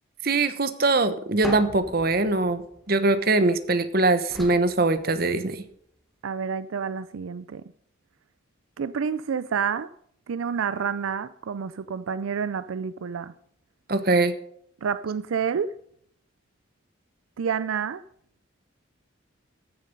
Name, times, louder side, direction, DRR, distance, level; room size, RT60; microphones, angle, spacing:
voice 1, 0.2-5.6 13.9-14.3, right 2 dB, 45° right, 1.0 m, -22 dB
sound 1, 1.4-3.6 4.3-5.7, equal, ahead, 1.8 m, -40 dB
voice 2, 6.2-7.6 8.8-9.9 10.3-13.3 14.8-15.7 17.4-18.0, right 6 dB, 80° right, 0.4 m, -29 dB
14.5 x 7.2 x 5.3 m
head